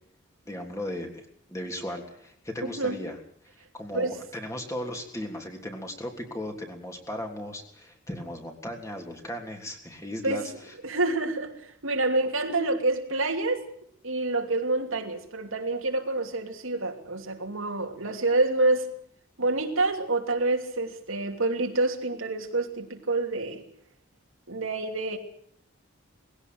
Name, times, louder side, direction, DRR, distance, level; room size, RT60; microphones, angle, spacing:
voice 1, 0.4-3.2 3.7-10.5, left 1 dB, 15° left, 3.4 m, -36 dB
voice 2, 10.8-13.6 14.0-18.9 19.4-23.6 24.5-25.2, right 2 dB, 80° right, 3.0 m, -27 dB
21.0 x 16.5 x 7.9 m
head